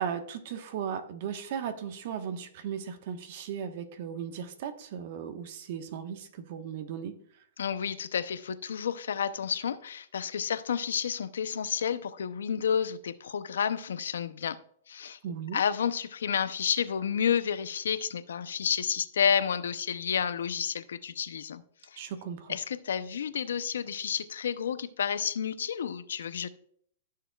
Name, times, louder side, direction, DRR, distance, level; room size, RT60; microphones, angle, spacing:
voice 1, 0.0-7.1 15.2-15.6 22.0-22.6, right 8 dB, 55° right, 7 dB, 1.3 m, -36 dB
voice 2, 7.6-14.6 14.9-15.2 15.5-21.6 21.9-22.0 22.5-26.5, left 7 dB, 85° left, 13 dB, 0.7 m, -30 dB
14.5 x 6.7 x 2.4 m, 0.62 s
hypercardioid pair, 145°, 0 cm